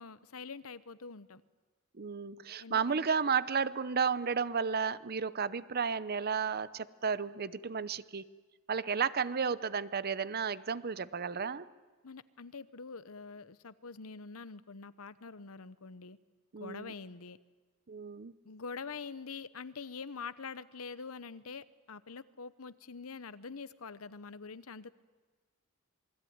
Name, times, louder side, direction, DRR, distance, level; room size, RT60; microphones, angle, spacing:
voice 1, 0.0-1.4 2.6-3.2 12.0-16.2 16.6-17.4 18.4-24.9, left 5 dB, 85° left, 15 dB, 1.0 m, -45 dB
voice 2, 2.0-8.2 8.7-11.7 16.5-16.9 17.9-18.3, right 6 dB, 45° right, 16 dB, 0.8 m, -33 dB
27.5 x 20.5 x 9.5 m, 1.3 s
head